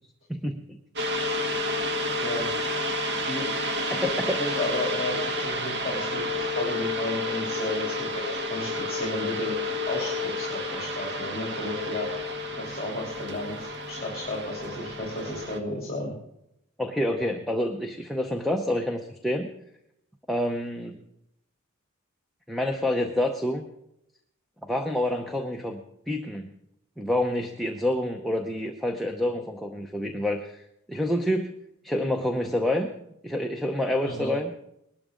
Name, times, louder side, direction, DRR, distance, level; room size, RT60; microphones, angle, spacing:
voice 1, 0.3-0.8 3.9-4.4 16.8-19.5 20.3-21.0 22.5-23.6 24.7-26.5 27.0-30.6 30.9-31.6 31.8-32.9 33.2-34.5, left 1 dB, ahead, 1 dB, 0.7 m, -28 dB
sound 1, 1.0-15.6, left 1 dB, 55° right, 1.2 m, -30 dB
voice 2, 4.4-9.5 9.9-12.1 12.6-16.1 34.0-34.3, left 1 dB, 25° left, -3 dB, 3.2 m, -33 dB
20.0 x 12.5 x 3.8 m, 0.80 s
head